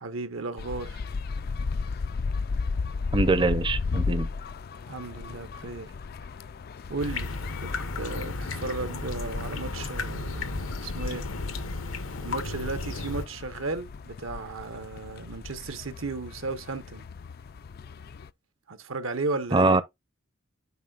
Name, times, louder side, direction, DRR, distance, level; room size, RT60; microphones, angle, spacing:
voice 1, 0.0-1.1 4.9-5.9 6.9-7.3 7.6-11.3 12.2-17.1 18.7-19.8, right 3 dB, 75° right, 1.1 m, -35 dB
sound 1, 0.6-18.3, left 4 dB, 50° left, 0.3 m, -35 dB
voice 2, 3.1-4.3 19.5-19.8, right 3 dB, 25° right, 0.6 m, -23 dB
sound 2, 7.0-13.3, left 3 dB, 80° left, 0.9 m, -34 dB
10.5 x 4.7 x 2.4 m
head